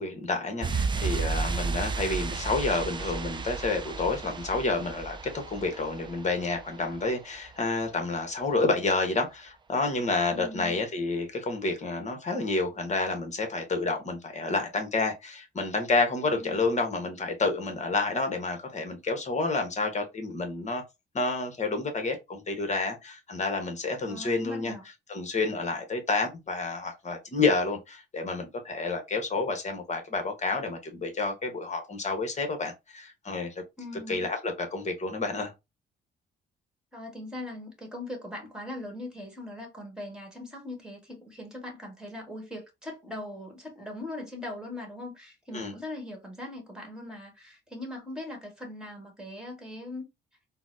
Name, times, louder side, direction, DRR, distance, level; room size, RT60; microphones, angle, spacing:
voice 1, 0.0-20.8 21.1-24.7 25.1-33.5 34.1-35.5 45.5-45.7, left 3 dB, 35° left, 1.0 m, -29 dB
sound 1, 0.6-7.1 7.4-7.5, right 4 dB, 25° right, 0.4 m, -33 dB
voice 2, 10.3-10.8 16.4-16.8 24.0-24.8 33.8-34.3 36.9-50.0, left 1 dB, 5° right, 1.5 m, -40 dB
3.9 x 2.1 x 2.5 m
cardioid pair, 90°, 20 cm